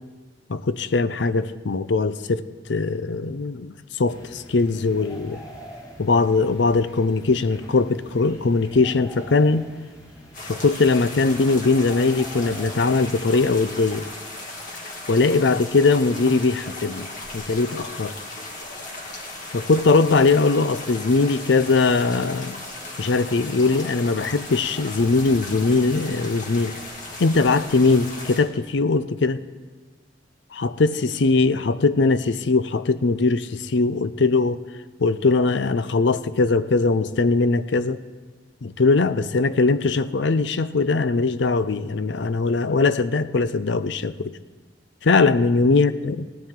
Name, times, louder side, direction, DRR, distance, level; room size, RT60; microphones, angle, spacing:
voice 1, 0.5-2.4 2.7-5.4 6.0-9.6 10.5-14.1 15.1-17.1 17.3-18.1 19.5-22.6 23.0-26.8 27.2-29.4 30.5-34.6 35.0-38.0 38.6-44.4 45.0-46.3, left 3 dB, 75° left, 0.6 m, -20 dB
sound 1, 4.1-14.1, equal, 20° left, 3.8 m, -44 dB
sound 2, 10.3-28.4, left 2 dB, 45° left, 2.1 m, -37 dB
17.5 x 12.0 x 3.7 m
head